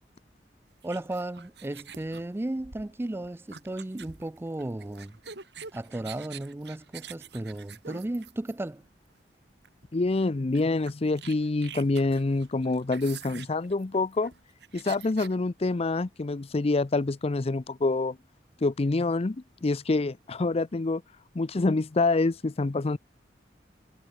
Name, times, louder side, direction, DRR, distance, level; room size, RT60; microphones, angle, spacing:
voice 1, 0.8-5.2 5.7-8.8, right 1 dB, 15° right, 0.4 m, -35 dB
sound 1, 0.8-8.9 9.6-9.8 10.1-10.2 10.5-15.4, right 7 dB, 70° right, 3.1 m, -46 dB
voice 2, 9.9-14.3 14.7-18.2 18.6-19.4 19.6-21.0 21.4-23.0, left 3 dB, 35° left, 0.5 m, -26 dB
head